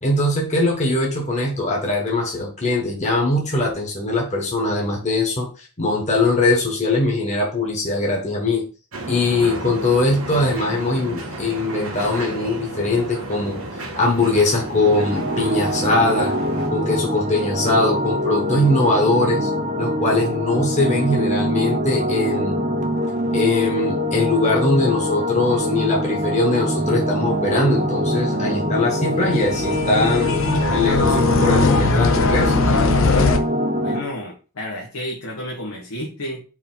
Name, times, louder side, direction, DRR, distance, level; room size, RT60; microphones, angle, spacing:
voice 1, 0.0-8.6 9.1-16.3 16.7-19.5 19.8-22.6 23.3-30.4 30.7-32.8, left 2 dB, 35° left, -1 dB, 1.1 m, -21 dB
sound 1, 8.9-16.7, right 2 dB, 65° right, 1.3 m, -32 dB
sound 2, 14.6-34.0, equal, 35° right, 0.8 m, -23 dB
sound 3, 29.2-33.4, left 4 dB, 65° left, 0.6 m, -20 dB
voice 2, 33.8-36.4, left 1 dB, 85° left, -2 dB, 1.2 m, -31 dB
4.8 x 2.8 x 3.8 m, 0.35 s
head